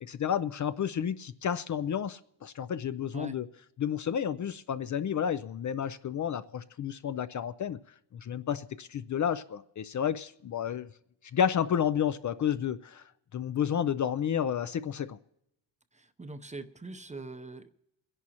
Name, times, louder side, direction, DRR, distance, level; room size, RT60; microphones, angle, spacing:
voice 1, 0.0-3.5 3.8-7.8 8.1-10.9 11.3-13.0 13.3-15.2, left 8 dB, 45° left, 0.5 m, -31 dB
voice 2, 15.9-17.7, right 3 dB, 15° right, 0.6 m, -42 dB
29.0 x 11.0 x 2.9 m
cardioid pair, 115°, 43 cm